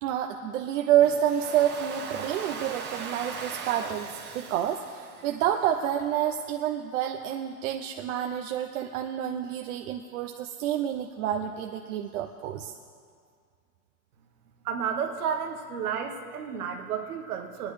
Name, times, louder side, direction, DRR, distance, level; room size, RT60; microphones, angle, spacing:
voice 1, 0.0-4.1 4.3-12.7, right 10 dB, 60° right, 4 dB, 0.7 m, -28 dB
Domestic sounds home sounds, 1.0-6.0, right 5 dB, 25° right, 1.2 m, -39 dB
voice 2, 14.6-17.7, right 7 dB, 75° right, 3 dB, 1.5 m, -32 dB
20.0 x 10.0 x 3.3 m, 2.1 s
supercardioid pair, 135°, 45 cm